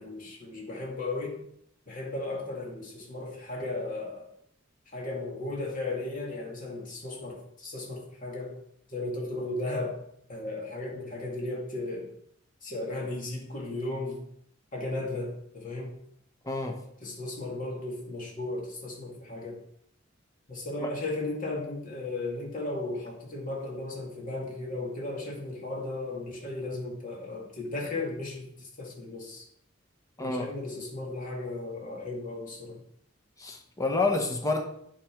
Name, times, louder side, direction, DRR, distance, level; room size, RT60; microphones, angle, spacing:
voice 1, 0.0-1.4 1.9-4.3 4.9-8.6 8.9-10.0 10.3-12.1 12.6-14.2 14.7-15.9 17.0-19.6 20.5-29.4 30.2-32.8, left 2 dB, 45° left, -2 dB, 2.2 m, -35 dB
voice 2, 16.4-16.8 20.8-20.9 30.2-30.5 33.4-34.6, left 3 dB, 15° left, 3 dB, 1.0 m, -28 dB
8.8 x 5.8 x 5.1 m, 0.71 s
head